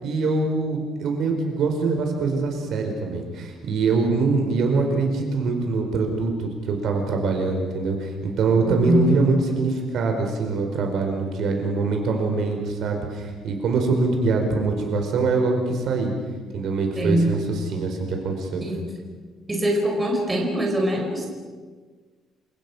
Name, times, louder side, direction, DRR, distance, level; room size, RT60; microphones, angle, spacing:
voice 1, 0.0-16.1 16.5-18.6, right 3 dB, 50° right, 3 dB, 4.8 m, -24 dB
voice 2, 8.7-9.1 17.0-17.4 18.6-18.8 19.5-21.3, equal, 10° right, 0 dB, 4.8 m, -23 dB
29.0 x 26.5 x 6.3 m, 1.4 s
cardioid pair, 180°, 0 cm